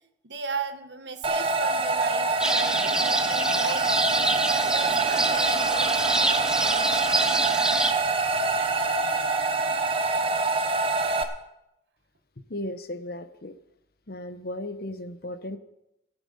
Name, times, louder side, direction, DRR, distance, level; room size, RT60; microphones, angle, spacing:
voice 1, 0.2-4.3 4.7-6.5, right 4 dB, 70° right, 8 dB, 1.4 m, -36 dB
sound 1, 1.2-11.2, right 3 dB, 30° right, 1.0 m, -25 dB
sound 2, 2.4-7.9, right 1 dB, 5° right, 0.6 m, -27 dB
voice 2, 12.5-13.5 14.1-15.6, left 1 dB, 55° left, 11 dB, 0.9 m, -35 dB
15.5 x 9.9 x 5.5 m, 0.87 s
head